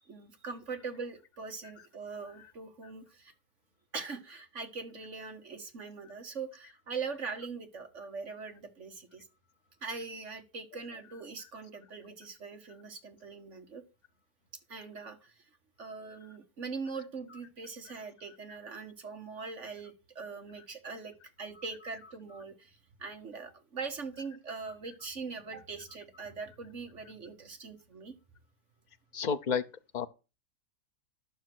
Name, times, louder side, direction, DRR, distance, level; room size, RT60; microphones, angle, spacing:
voice 1, 0.1-3.3 3.9-9.3 9.8-13.8 14.7-15.4 15.8-28.2, right 4 dB, 45° right, 1.9 m, -42 dB
voice 2, 21.5-22.4 24.6-24.7 29.1-29.6 29.9-30.1, left 6 dB, 70° left, 0.4 m, -35 dB
11.5 x 6.6 x 6.2 m
omnidirectional pair, 1.8 m